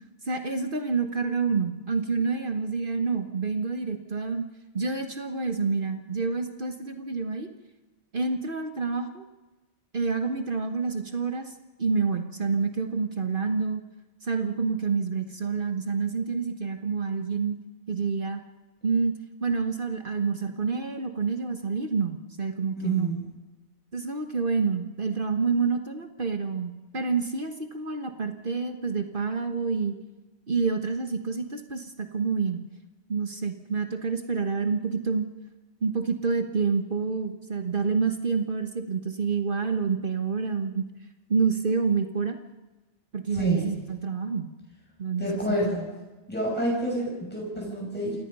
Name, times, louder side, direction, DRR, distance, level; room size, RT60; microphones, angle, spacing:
voice 1, 0.2-4.5 4.7-7.5 8.1-9.3 9.9-13.8 14.2-17.6 17.9-18.4 18.8-19.1 19.4-23.1 23.9-30.0 30.5-32.6 33.1-35.3 35.8-40.9 41.3-42.4 43.1-44.5 45.0-45.3, right 5 dB, 50° right, 6 dB, 1.6 m, -28 dB
voice 2, 22.8-23.2 43.3-43.7 45.2-45.8 46.3-48.2, equal, 10° left, -3 dB, 6.3 m, -28 dB
28.0 x 18.0 x 5.5 m, 1.1 s
omnidirectional pair, 1.1 m